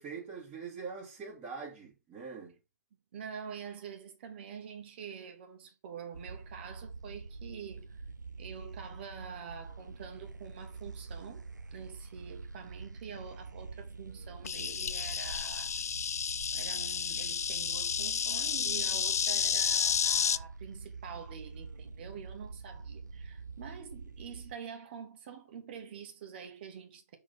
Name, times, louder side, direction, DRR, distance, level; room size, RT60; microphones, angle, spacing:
voice 1, 0.0-2.6, right 5 dB, 20° right, 2.1 m, -43 dB
voice 2, 3.1-8.0 8.4-15.8 16.5-27.2, right 7 dB, 35° right, 1.7 m, -46 dB
sound 1, 6.1-24.5, right 4 dB, 85° right, 0.6 m, -46 dB
Insect, 14.4-20.4, left 7 dB, 60° left, 0.4 m, -31 dB
6.3 x 3.9 x 5.3 m
figure-of-eight pair, 140°, 10 cm